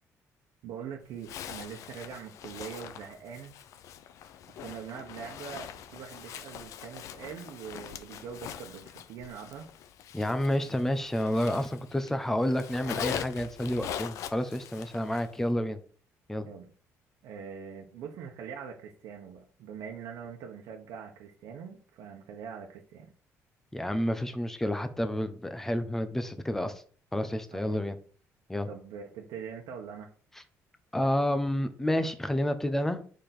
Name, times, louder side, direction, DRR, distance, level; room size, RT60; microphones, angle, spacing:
voice 1, 0.6-3.5 4.6-9.7 16.5-16.7 17.2-23.1 27.5-27.8 28.7-30.1, right 7 dB, 85° right, 1 dB, 1.2 m, -43 dB
Zipper (clothing), 1.2-12.1 12.4-15.4, left 9 dB, 70° left, 0.7 m, -42 dB
voice 2, 10.1-15.8 16.3-16.5 23.7-26.8 27.1-28.0 28.5-28.7 30.9-33.0, left 1 dB, 5° left, 9 dB, 0.9 m, -29 dB
6.8 x 5.2 x 6.0 m, 0.44 s
cardioid pair, 155°, 6 cm